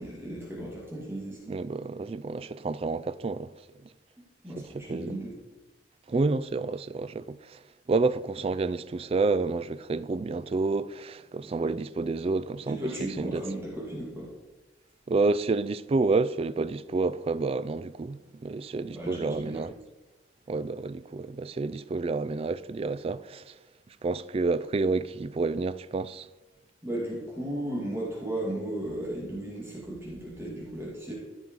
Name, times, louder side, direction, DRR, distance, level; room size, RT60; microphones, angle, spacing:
voice 1, 0.0-1.5 4.4-5.3 12.7-14.3 18.9-19.7 26.8-31.1, right 1 dB, 15° right, 2.3 m, -35 dB
voice 2, 1.5-3.5 4.6-5.1 6.1-7.6 7.9-13.4 15.1-19.7 20.5-23.5 24.0-26.3, right 3 dB, 35° right, 0.3 m, -29 dB
14.0 x 5.4 x 4.7 m
head